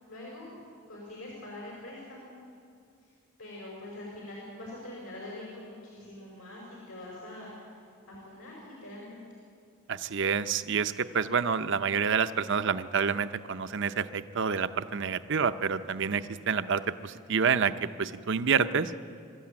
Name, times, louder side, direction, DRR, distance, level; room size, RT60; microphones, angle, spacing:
voice 1, 0.1-0.5 0.9-2.4 3.0-3.1 3.4-7.6 8.1-9.2, left 1 dB, 80° left, -4 dB, 5.2 m, -44 dB
voice 2, 9.9-18.9, right 6 dB, 55° right, 11 dB, 0.6 m, -28 dB
23.5 x 13.5 x 8.7 m, 2.3 s
head